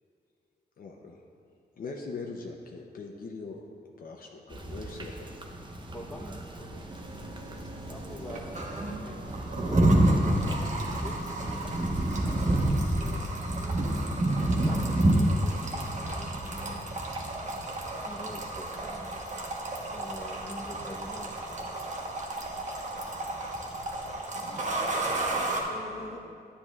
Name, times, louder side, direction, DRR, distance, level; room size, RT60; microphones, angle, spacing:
voice 1, 0.8-1.2 1.8-3.6 4.0-5.3, left 4 dB, 60° left, 0.7 m, -41 dB
sound 1, 4.5-24.2, right 1 dB, 30° right, 0.8 m, -29 dB
voice 2, 5.9-7.2 7.5-9.2 10.4-10.6 11.0-13.8 14.3-16.9 17.5-19.2 19.9-21.7, left 1 dB, 5° left, 1.0 m, -46 dB
sound 2, 6.9-25.6, right 2 dB, 45° right, 1.2 m, -36 dB
voice 3, 24.4-26.2, left 2 dB, 40° left, 1.4 m, -43 dB
10.5 x 9.9 x 2.4 m
wide cardioid pair, 105°, 16 cm